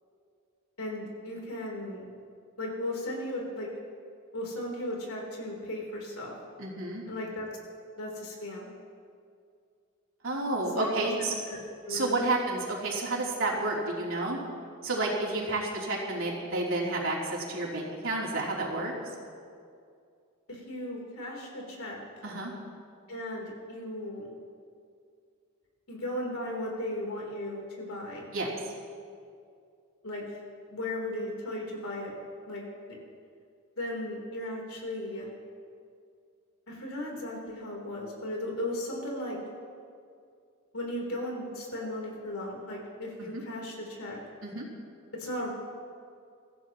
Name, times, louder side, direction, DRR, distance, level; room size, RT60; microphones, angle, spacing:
voice 1, 0.8-2.1 2.6-3.7 4.3-6.3 7.1-7.5 8.0-8.7 10.6-10.9 11.2-12.2 20.5-22.0 23.1-24.3 25.9-28.3 30.0-30.2 30.7-32.1 32.5-32.6 33.8-35.3 36.7-39.4 40.7-44.2 45.1-45.5, left 1 dB, 70° left, -1 dB, 3.7 m, -36 dB
voice 2, 6.6-7.0 10.2-11.3 11.9-14.4 14.8-18.9 22.2-22.5 28.3-28.5 43.3-43.4 44.4-44.7, right 2 dB, 65° right, -4 dB, 3.4 m, -30 dB
25.0 x 15.0 x 3.1 m, 2.3 s
head